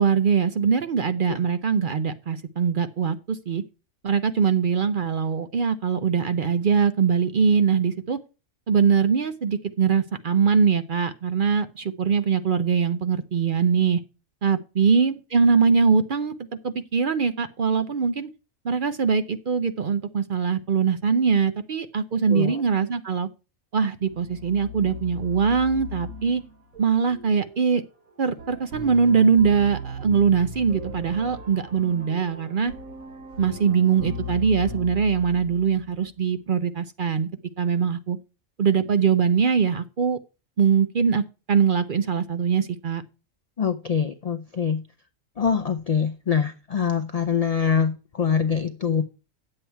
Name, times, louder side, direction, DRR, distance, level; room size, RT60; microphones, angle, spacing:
voice 1, 0.0-3.6 4.0-8.2 8.7-14.0 14.4-16.3 16.6-18.3 18.6-23.3 23.7-26.4 26.8-27.8 28.2-32.7 33.4-37.3 37.6-38.2 38.6-40.2 40.6-43.0, right 6 dB, 50° right, 11 dB, 0.6 m, -22 dB
voice 2, 22.3-22.6 43.6-44.8 45.4-49.0, left 7 dB, 55° left, 7 dB, 0.4 m, -24 dB
sound 1, 24.0-36.1, left 1 dB, 85° right, 1.9 m, -38 dB
9.4 x 7.8 x 4.5 m, 0.32 s
omnidirectional pair, 1.4 m